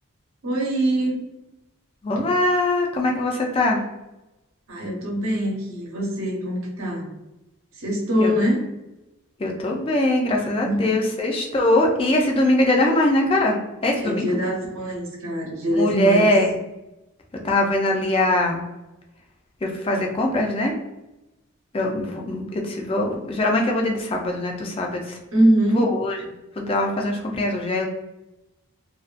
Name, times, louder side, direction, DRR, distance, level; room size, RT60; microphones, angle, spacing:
voice 1, 0.4-1.2 4.7-7.1 7.7-8.7 10.6-10.8 14.0-16.3 25.3-25.9, equal, 70° right, -2 dB, 0.8 m, -23 dB
voice 2, 2.0-3.8 8.2-8.3 9.4-14.3 15.8-16.5 17.4-18.6 19.6-20.7 21.7-25.2 25.7-26.2 26.6-27.9, left 1 dB, 25° left, 1 dB, 0.3 m, -22 dB
2.4 x 2.3 x 2.4 m, 0.98 s
head